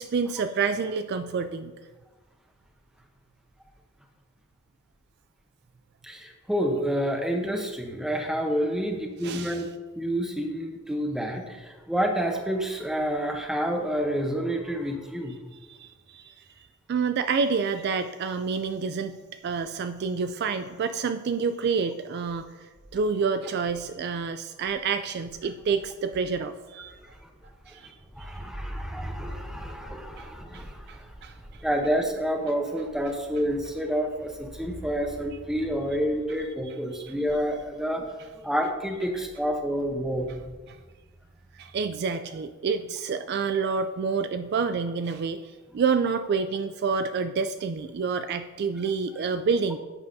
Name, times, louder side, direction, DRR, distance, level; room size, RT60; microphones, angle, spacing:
voice 1, 0.0-1.7 9.2-9.6 15.7-16.3 16.9-22.4 22.9-26.9 27.7-27.9 30.2-30.3 30.5-31.3 37.0-37.1 40.7-40.8 41.6-49.8, right 5 dB, 50° right, 9 dB, 0.3 m, -28 dB
voice 2, 6.0-9.7 10.0-15.4 27.7-27.8 28.1-31.1 31.6-38.1 38.4-40.4, equal, ahead, 3 dB, 0.8 m, -29 dB
11.5 x 8.0 x 2.7 m, 1.3 s
head